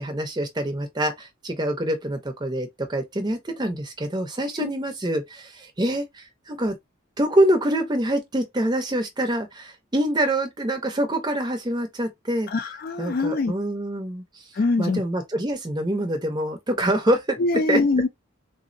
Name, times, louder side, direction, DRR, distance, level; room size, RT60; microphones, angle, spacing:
voice 1, 0.0-6.8 7.2-12.5 13.0-14.2 14.8-17.4 17.7-17.8, right 1 dB, 20° right, 0.6 m, -25 dB
voice 2, 12.5-13.5 14.6-15.0 17.4-18.1, left 3 dB, 45° left, 0.3 m, -23 dB
3.4 x 2.0 x 2.5 m
head